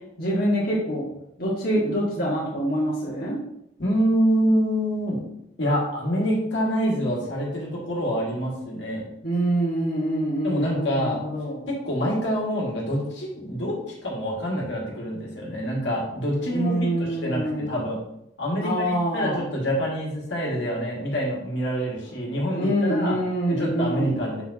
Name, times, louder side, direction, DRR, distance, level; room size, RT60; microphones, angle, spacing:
voice 1, 0.2-1.0 1.4-3.4 9.2-11.6 16.5-17.7 18.6-19.4 22.6-24.1, right 1 dB, 50° left, -7 dB, 1.7 m, -25 dB
voice 2, 3.8-5.2 5.6-9.0 10.4-11.2 11.7-18.0 18.4-23.2 23.5-24.4, equal, 70° left, -3 dB, 2.1 m, -26 dB
6.9 x 5.7 x 2.9 m, 0.80 s
head